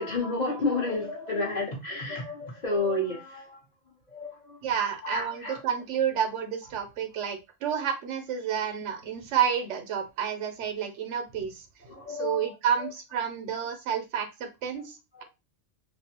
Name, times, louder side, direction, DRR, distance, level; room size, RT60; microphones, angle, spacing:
voice 1, 0.0-3.6 4.1-4.7 5.0-5.6 7.7-7.8 11.8-12.9 14.8-14.9 15.1-15.2, left 2 dB, 40° left, -1 dB, 0.8 m, -31 dB
voice 2, 4.6-11.6 12.2-15.2, right 8 dB, 75° right, 7 dB, 0.9 m, -30 dB
2.5 x 2.2 x 2.8 m, 0.25 s
omnidirectional pair, 1.3 m